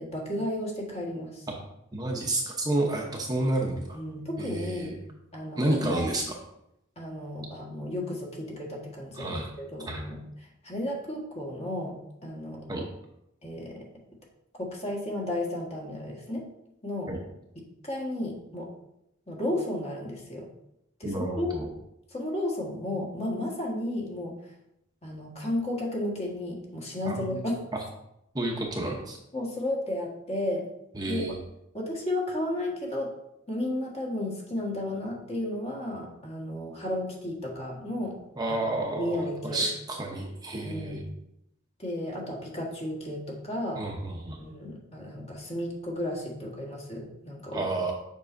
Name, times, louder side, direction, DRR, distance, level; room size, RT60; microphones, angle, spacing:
voice 1, 0.0-1.5 3.9-4.9 5.3-6.2 7.0-12.0 12.2-12.7 13.4-13.9 14.6-16.4 16.8-17.1 17.5-18.7 19.3-20.5 21.0-21.6 22.1-24.5 25.0-27.6 29.3-30.7 31.1-31.2 31.7-33.1 33.5-38.2 38.5-39.7 40.6-41.0 41.8-43.9 44.4-47.7, left 1 dB, 35° left, -2 dB, 1.5 m, -33 dB
voice 2, 1.9-4.0 4.4-4.9 5.6-6.3 9.2-9.5 9.9-10.0 12.7-12.8 17.1-17.2 21.0-21.7 27.1-27.5 28.3-29.2 31.0-31.4 38.4-41.0 43.8-44.4 47.5-47.9, right 2 dB, 20° right, 0 dB, 0.8 m, -30 dB
7.2 x 5.5 x 2.6 m, 0.82 s
head